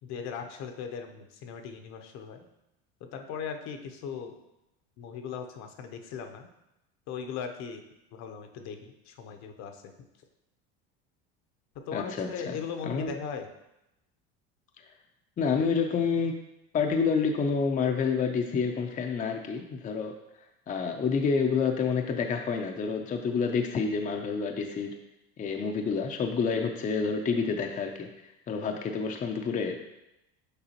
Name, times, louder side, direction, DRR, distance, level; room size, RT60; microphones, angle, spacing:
voice 1, 0.0-2.5 3.0-4.3 5.0-6.5 7.1-7.8 8.1-9.9 11.9-13.5, left 6 dB, 60° left, 5 dB, 0.8 m, -38 dB
voice 2, 11.9-12.3 12.8-13.1 15.4-16.3 16.7-20.1 20.7-24.9 25.4-29.8, left 5 dB, 25° left, 3 dB, 0.6 m, -28 dB
6.8 x 4.7 x 2.9 m, 0.89 s
supercardioid pair, 105°, 31 cm